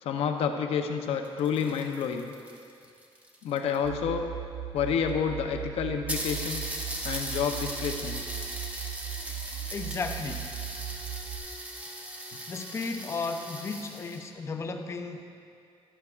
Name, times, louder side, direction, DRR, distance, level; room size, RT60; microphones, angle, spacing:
voice 1, 0.0-2.3 3.4-4.3 4.7-6.7 7.0-8.2, left 7 dB, 75° left, 5 dB, 0.7 m, -29 dB
sound 1, 1.1-3.9 4.8-4.9 5.1-5.2 5.5-5.6 6.1-14.3, right 1 dB, 15° right, 0.8 m, -38 dB
sound 2, 3.8-11.4, right 11 dB, 35° right, 0.9 m, -38 dB
voice 2, 9.7-10.5 12.5-15.3, left 4 dB, 25° left, 6 dB, 0.5 m, -34 dB
11.0 x 11.0 x 2.4 m, 2.4 s
cardioid pair, 175°, 10 cm